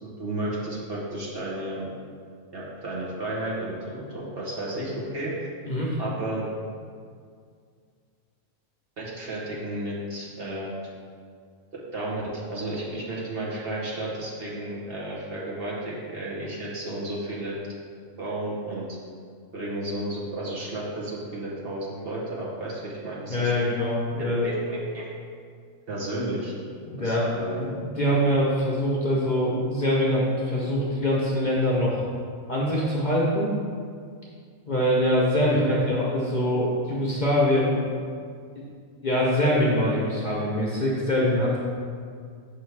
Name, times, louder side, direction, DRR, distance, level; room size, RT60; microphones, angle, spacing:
voice 1, 0.0-1.9 2.5-5.5 6.0-6.5 9.0-10.7 11.7-17.6 18.2-18.8 19.5-23.5 24.2-25.1 25.9-26.5 27.0-27.6 35.7-35.8, right 1 dB, 50° right, -6 dB, 1.1 m, -32 dB
voice 2, 23.3-24.5 26.9-27.3 27.6-32.0 32.5-33.5 34.7-37.8 39.0-41.6, equal, 40° left, -5 dB, 0.8 m, -24 dB
6.3 x 3.3 x 4.6 m, 2.2 s
omnidirectional pair, 1.4 m